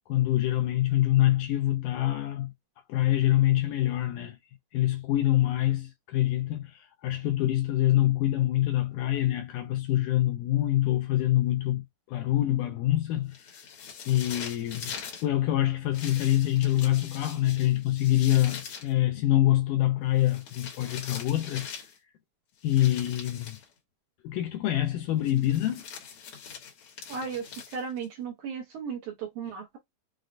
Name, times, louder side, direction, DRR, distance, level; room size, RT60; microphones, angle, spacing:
voice 1, 0.1-2.5 2.9-4.4 4.7-13.7 14.1-14.9 15.2-21.7 22.6-23.6 24.2-25.8, left 14 dB, 85° left, 1.9 m, -25 dB
sound 1, 13.3-15.3 15.9-18.9 20.2-22.0 22.6-23.7 25.2-28.0, left 7 dB, 60° left, 2.0 m, -42 dB
voice 2, 27.1-29.8, right 6 dB, 75° right, 1.9 m, -36 dB
6.0 x 2.2 x 2.5 m
omnidirectional pair, 4.2 m